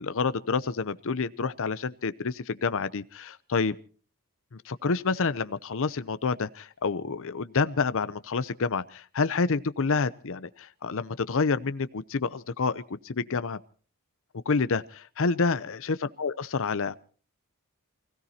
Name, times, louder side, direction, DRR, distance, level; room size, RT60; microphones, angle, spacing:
voice 1, 0.0-3.7 4.6-13.6 14.5-17.0, left 4 dB, 60° left, 14 dB, 0.7 m, -28 dB
28.5 x 17.0 x 2.9 m, 0.41 s
head